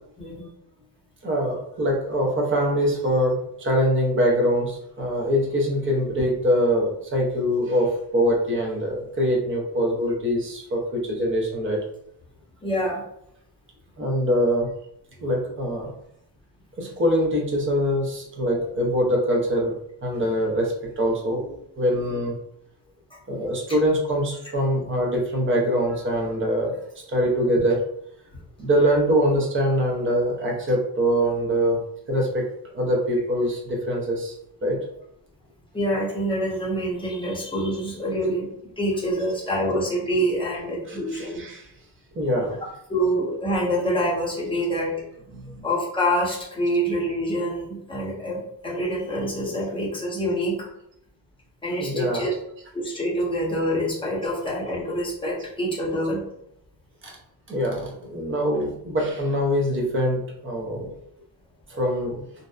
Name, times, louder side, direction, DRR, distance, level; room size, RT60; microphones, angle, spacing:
voice 1, 1.2-11.8 14.0-14.7 15.2-15.9 16.8-19.7 20.0-22.4 23.3-26.8 27.1-27.8 28.6-31.8 32.1-34.4 34.6-34.8 38.0-38.3 40.9-41.7 42.1-42.6 44.6-44.7 45.3-45.7 51.8-52.4 57.0-57.1 57.5-60.9 61.7-62.2, equal, 30° right, 0 dB, 0.6 m, -24 dB
voice 2, 12.6-13.0 18.5-18.6 35.7-38.5 38.8-41.4 42.9-44.9 45.6-50.7 51.6-52.3 52.7-56.2, equal, 15° left, -6 dB, 0.7 m, -26 dB
2.6 x 2.1 x 2.3 m, 0.75 s
cardioid pair, 145°, 40 cm